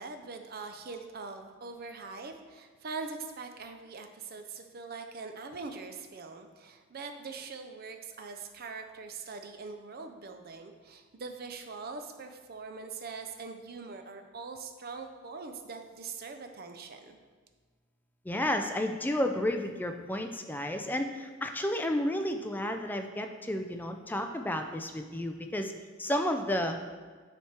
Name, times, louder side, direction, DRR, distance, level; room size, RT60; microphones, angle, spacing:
voice 1, 0.0-17.2, right 4 dB, 45° right, 6 dB, 0.5 m, -42 dB
voice 2, 18.3-25.7 26.0-26.8, left 1 dB, 10° left, 5 dB, 0.3 m, -31 dB
9.1 x 3.5 x 4.4 m, 1.5 s
head